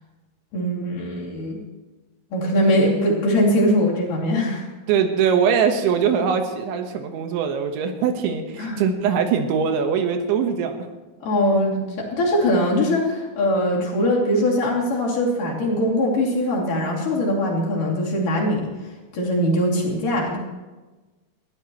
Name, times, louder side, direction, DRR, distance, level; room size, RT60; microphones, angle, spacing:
voice 1, 0.5-1.6 2.3-4.7 8.6-8.8 11.2-18.7 19.1-20.4, equal, 50° left, -4 dB, 4.1 m, -21 dB
voice 2, 4.9-10.9, right 7 dB, 85° right, 5 dB, 3.6 m, -22 dB
21.0 x 14.5 x 3.1 m, 1.2 s
omnidirectional pair, 5.3 m